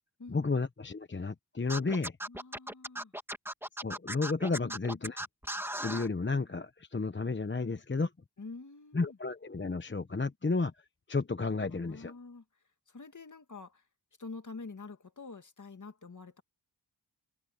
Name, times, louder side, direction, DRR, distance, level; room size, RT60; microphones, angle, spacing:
voice 1, 0.3-2.2 3.8-5.2 5.8-8.1 8.9-10.7 11.1-12.1, left 3 dB, 30° left, 1.0 m, -32 dB
Scratching (performance technique), 1.7-6.1, right 1 dB, 5° right, 2.3 m, -37 dB
voice 2, 2.3-3.1 4.6-4.8 7.6-7.8 8.4-9.2 11.6-13.8 14.2-16.4, left 3 dB, 45° left, 2.2 m, -47 dB
wide cardioid pair, 70°, 41 cm